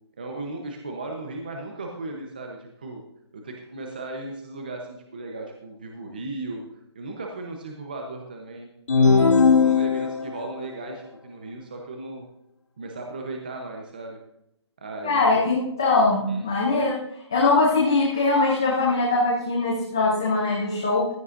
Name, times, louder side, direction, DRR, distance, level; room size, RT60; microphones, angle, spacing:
voice 1, 0.2-3.0 3.3-6.6 6.9-8.7 9.0-12.3 12.8-14.2 14.8-15.4 16.3-16.5, right 2 dB, 20° right, 2 dB, 0.8 m, -36 dB
sound 1, 8.9-10.5, left 5 dB, 90° left, 2.9 m, -18 dB
voice 2, 15.0-21.1, left 3 dB, 5° left, -4 dB, 0.5 m, -22 dB
15.0 x 12.5 x 2.5 m, 0.81 s
hypercardioid pair, 175°, 15 cm